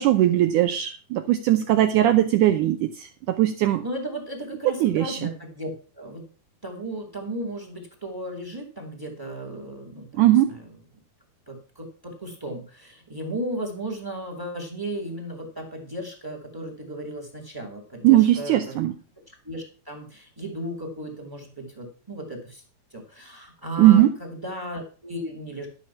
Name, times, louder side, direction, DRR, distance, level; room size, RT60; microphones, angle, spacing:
voice 1, 0.0-3.8 4.8-5.3 10.2-10.5 18.0-18.9 23.8-24.1, right 13 dB, 80° right, 8 dB, 1.8 m, -19 dB
voice 2, 3.8-6.2 6.6-10.7 11.5-18.7 19.4-22.6 22.9-24.0 24.4-25.7, right 1 dB, 10° right, 4 dB, 1.6 m, -35 dB
12.0 x 6.2 x 5.8 m, 0.37 s
omnidirectional pair, 4.3 m